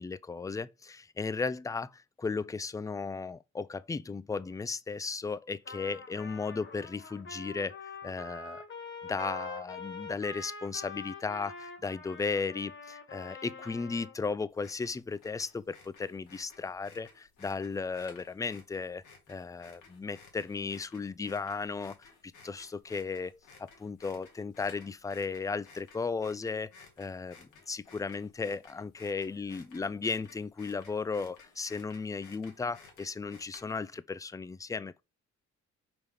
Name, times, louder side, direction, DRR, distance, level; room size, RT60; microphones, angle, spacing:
voice 1, 0.0-8.6 9.0-35.0, left 4 dB, 10° left, 0.4 m, -35 dB
Trumpet, 5.6-14.2, left 3 dB, 40° left, 1.8 m, -44 dB
sound 1, 14.5-34.0, left 4 dB, 85° left, 2.3 m, -57 dB
4.9 x 3.5 x 5.5 m
cardioid pair, 90°, 30 cm